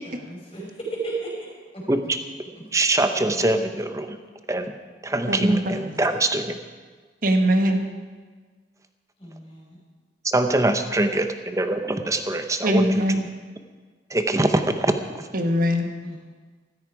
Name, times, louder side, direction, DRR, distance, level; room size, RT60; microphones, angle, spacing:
voice 1, 0.0-1.3 1.7-1.8 3.3-3.4 5.8-6.0 9.2-9.8 16.0-16.2, right 3 dB, 30° left, -3 dB, 5.3 m, -34 dB
voice 2, 2.7-4.2 4.5-4.7 5.0-6.6 10.2-13.3 14.1-15.3, right 2 dB, 20° right, 7 dB, 0.9 m, -23 dB
voice 3, 5.3-5.6 7.2-7.8 12.6-13.2 15.3-15.9, equal, 50° right, 5 dB, 1.4 m, -21 dB
15.0 x 13.5 x 4.8 m, 1.5 s
head